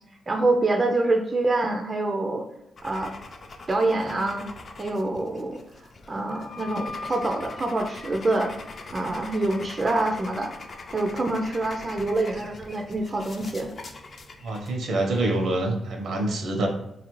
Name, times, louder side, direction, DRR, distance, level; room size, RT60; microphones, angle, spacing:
voice 1, 0.3-2.4 2.8-3.1 3.7-4.5 4.8-5.6 6.1-8.5 8.9-10.5 10.9-13.7, right 2 dB, 30° right, 3 dB, 0.3 m, -26 dB
sound 1, 2.8-15.4, left 3 dB, 45° left, 0.4 m, -43 dB
Wind instrument woodwind instrument, 6.3-11.2, left 4 dB, 75° left, 0.7 m, -43 dB
voice 2, 14.4-16.7, right 2 dB, 75° right, 2 dB, 0.7 m, -26 dB
3.7 x 2.4 x 3.0 m, 0.84 s
wide cardioid pair, 125°, 0 cm